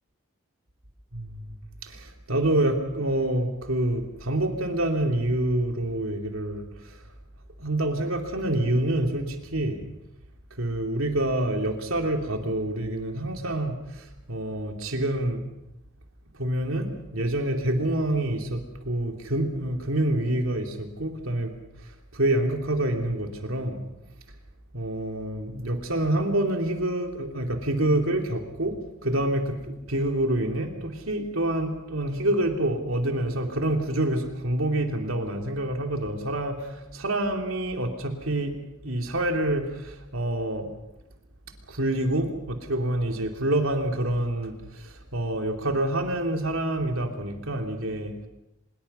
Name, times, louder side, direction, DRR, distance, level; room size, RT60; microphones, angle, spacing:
voice 1, 1.1-7.0 7.6-9.8 10.6-15.4 16.3-21.5 22.1-23.8 24.7-28.7 29.0-38.6 38.8-40.7 41.7-48.3, right 1 dB, 75° right, 3 dB, 3.0 m, -27 dB
24.5 x 21.5 x 5.6 m, 0.92 s
head